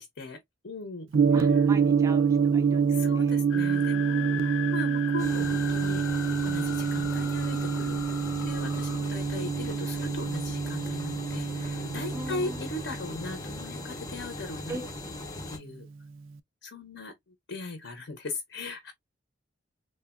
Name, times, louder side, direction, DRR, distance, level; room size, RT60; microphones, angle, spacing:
voice 1, 0.0-1.7 2.9-14.8 15.5-15.9 16.6-18.9, left 2 dB, 65° left, 0.7 m, -39 dB
Gong, 1.1-15.3, right 6 dB, 90° right, 0.4 m, -27 dB
voice 2, 1.3-3.4 12.1-12.6 14.7-14.9, right 2 dB, 15° right, 0.3 m, -40 dB
sound 1, 3.5-9.0, left 10 dB, 80° left, 0.3 m, -39 dB
sound 2, 5.2-15.6, left 2 dB, 20° left, 0.6 m, -40 dB
3.3 x 2.1 x 2.3 m
head